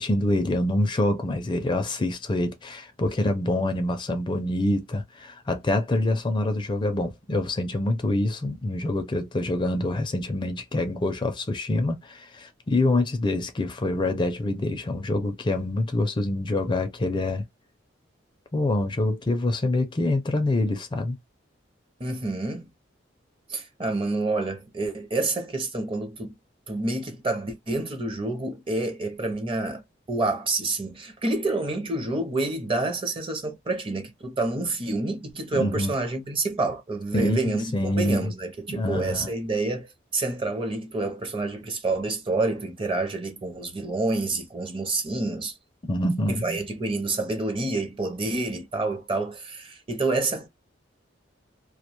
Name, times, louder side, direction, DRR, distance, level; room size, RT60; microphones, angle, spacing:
voice 1, 0.0-17.4 18.5-21.2 35.5-35.9 37.1-38.3 38.7-39.3 45.9-46.6, left 1 dB, 25° left, 0.4 m, -26 dB
voice 2, 22.0-22.6 23.5-26.3 26.7-29.8 30.1-45.5 46.3-50.5, right 2 dB, 30° right, 0.6 m, -28 dB
2.3 x 2.2 x 2.8 m
head